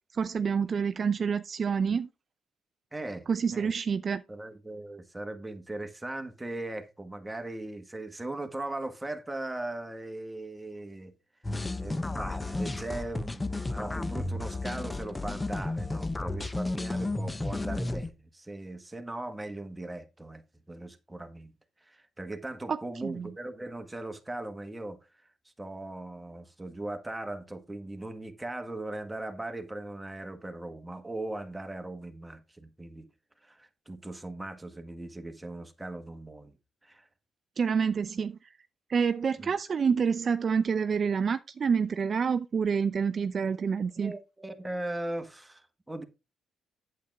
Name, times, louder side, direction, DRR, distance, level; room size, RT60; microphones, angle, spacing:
voice 1, 0.1-2.1 3.3-4.2 22.7-23.3 37.6-38.4 38.9-44.1, right 6 dB, 45° right, 0.4 m, -28 dB
voice 2, 2.9-3.7 4.3-11.1 11.5-20.4 20.7-21.5 21.8-25.0 25.6-33.1 33.4-36.5 36.8-37.1 39.4-39.5 43.9-46.0, right 2 dB, 10° right, 1.5 m, -39 dB
sound 1, 11.4-18.1, left 2 dB, 15° left, 0.8 m, -33 dB
8.5 x 7.8 x 3.5 m
cardioid pair, 90°, 0 cm